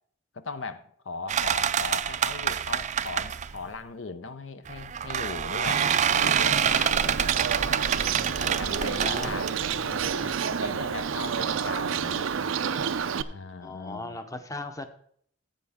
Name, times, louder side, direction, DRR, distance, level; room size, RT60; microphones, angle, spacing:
voice 1, 0.3-7.4 8.1-12.3 13.3-14.2, left 4 dB, 75° left, 11 dB, 0.7 m, -39 dB
sound 1, 1.3-3.6 4.7-10.1, right 8 dB, 40° right, 0.4 m, -27 dB
Bird, 5.7-13.2, right 7 dB, 90° right, 0.5 m, -29 dB
voice 2, 7.4-7.8 8.7-9.4 11.4-11.5 13.6-14.9, left 2 dB, 15° left, 8 dB, 0.8 m, -39 dB
14.5 x 7.9 x 3.6 m, 0.62 s
head